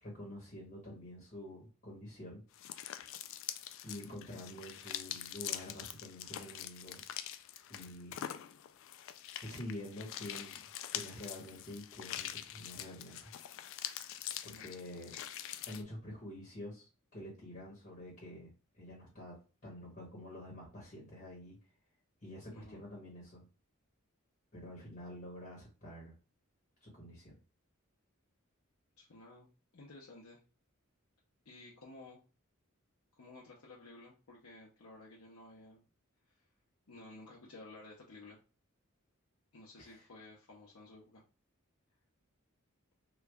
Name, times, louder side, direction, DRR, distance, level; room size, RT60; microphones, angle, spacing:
voice 1, 0.0-2.4 3.2-3.4 3.8-7.0 7.7-8.2 9.4-10.6 10.9-13.3 13.6-13.9 14.4-15.2 15.6-19.3 19.6-21.6 22.2-23.5 24.5-26.1 26.8-27.3 39.8-40.0, left 1 dB, 40° left, -3 dB, 1.2 m, -48 dB
sound 1, 2.5-15.8, left 11 dB, 65° left, 0.3 m, -44 dB
voice 2, 22.5-22.8 29.0-29.5 29.7-30.4 31.4-32.2 33.1-35.8 36.3-36.5 36.9-38.4 39.5-41.2, left 2 dB, 85° left, -4 dB, 0.8 m, -54 dB
3.1 x 2.3 x 3.4 m, 0.34 s
head